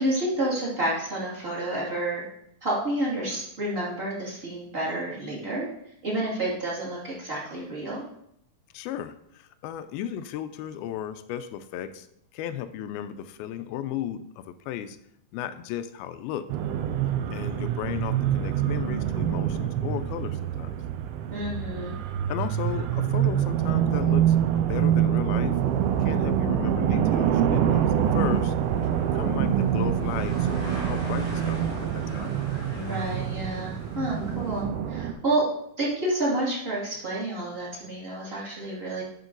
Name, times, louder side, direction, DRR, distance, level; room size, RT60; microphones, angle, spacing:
voice 1, 0.0-2.2 2.6-5.7 6.0-8.0 21.3-22.0 32.7-35.4 35.8-39.0, right 1 dB, 20° right, -6 dB, 1.9 m, -29 dB
voice 2, 8.7-12.1 12.3-15.0 15.3-16.5 17.3-20.8 22.3-25.6 26.0-28.5 29.1-32.3, left 10 dB, 85° left, 11 dB, 2.4 m, -35 dB
sound 1, 16.5-35.1, right 10 dB, 85° right, 2.6 m, -25 dB
sound 2, 25.5-34.6, right 2 dB, 60° right, 4.1 m, -42 dB
11.0 x 5.3 x 3.9 m, 0.75 s
omnidirectional pair, 4.4 m